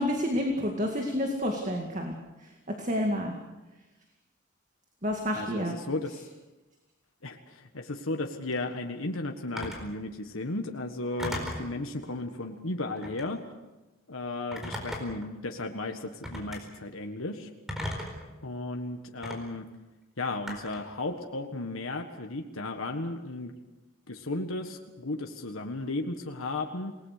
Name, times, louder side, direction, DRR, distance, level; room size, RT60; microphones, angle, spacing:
voice 1, 0.0-2.2 2.4-2.5 2.8-3.3 5.0-5.7, left 1 dB, 35° right, 2 dB, 2.2 m, -29 dB
voice 2, 5.3-6.3 7.2-13.4 14.1-17.5 18.4-19.6 20.2-23.5 24.1-26.9, left 2 dB, 85° left, 3 dB, 1.7 m, -35 dB
Telephone, 9.6-9.9 11.2-11.7 13.0-13.3 14.5-15.3 16.2-16.6 17.7-18.2 19.2-19.4 20.5-20.9, left 1 dB, ahead, 4.4 m, -36 dB
27.5 x 19.5 x 6.7 m, 1.1 s
head